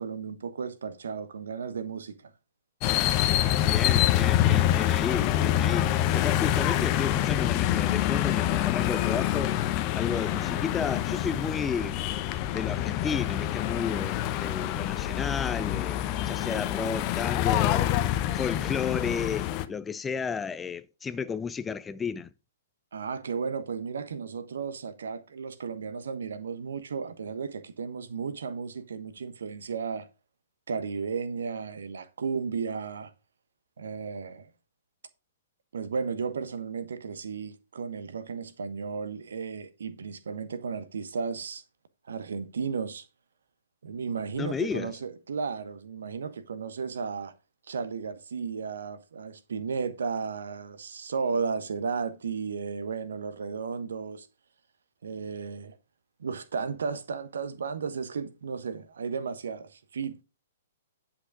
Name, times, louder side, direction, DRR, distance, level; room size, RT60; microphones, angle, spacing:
voice 1, 0.0-2.3 22.9-30.1 30.7-33.1 33.8-34.5 35.7-41.6 42.1-43.1 43.8-47.3 47.7-54.3 55.0-55.8 56.2-60.2, right 5 dB, 60° right, 1.1 m, -34 dB
sound 1, 2.8-19.7, left 12 dB, 30° left, 0.8 m, -26 dB
voice 2, 3.6-9.6 9.9-12.0 12.5-18.0 18.3-22.3 44.4-44.9, left 6 dB, 10° left, 0.4 m, -33 dB
10.0 x 5.8 x 4.9 m
figure-of-eight pair, 115°, 0 cm